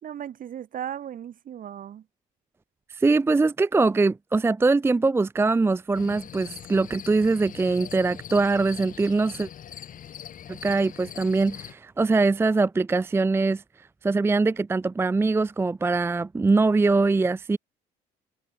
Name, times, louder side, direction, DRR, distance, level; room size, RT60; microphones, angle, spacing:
voice 1, 0.0-2.1, right 10 dB, 55° right, 5.5 m, -36 dB
voice 2, 2.9-9.5 10.5-13.6 14.0-17.6, right 3 dB, 15° right, 0.5 m, -22 dB
sound 1, 5.9-11.7, left 9 dB, 55° left, 6.5 m, -42 dB
cardioid pair, 110°, 17 cm